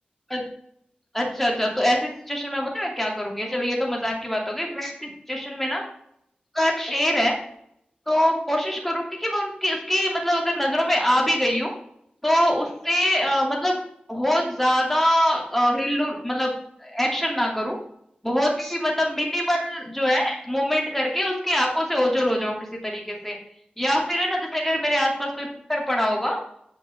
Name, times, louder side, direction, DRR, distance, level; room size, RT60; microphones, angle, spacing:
voice 1, 1.1-5.8 6.5-7.3 8.1-11.7 12.2-13.7 14.1-16.5 16.8-17.8 18.2-22.5 22.8-23.4 23.8-26.4, equal, 5° left, -1 dB, 2.6 m, -24 dB
8.2 x 5.2 x 7.4 m, 0.72 s
wide cardioid pair, 85°, 3 cm